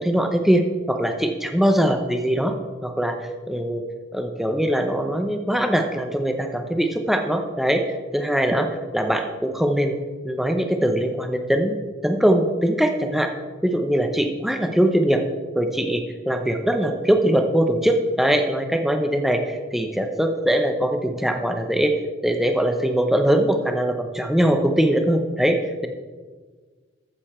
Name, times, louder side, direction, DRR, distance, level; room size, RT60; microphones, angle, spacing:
voice 1, 0.0-2.5 2.8-3.2 3.5-3.8 4.1-7.8 8.1-8.7 8.9-9.9 10.2-11.8 12.0-13.3 13.6-15.2 15.5-21.9 22.2-25.9, equal, ahead, 5 dB, 0.7 m, -21 dB
14.0 x 7.0 x 4.3 m, 1.4 s
head